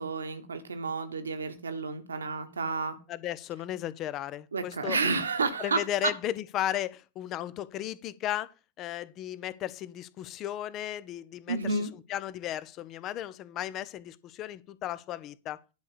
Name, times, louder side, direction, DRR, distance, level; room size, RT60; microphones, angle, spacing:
voice 1, 0.0-3.0 4.5-6.1 11.5-11.9, right 4 dB, 75° right, 1.3 m, -31 dB
voice 2, 3.1-5.0 5.6-8.5 8.8-11.8 12.1-15.6, left 12 dB, 35° left, 0.7 m, -35 dB
10.5 x 4.9 x 6.8 m
figure-of-eight pair, 90°, 0 cm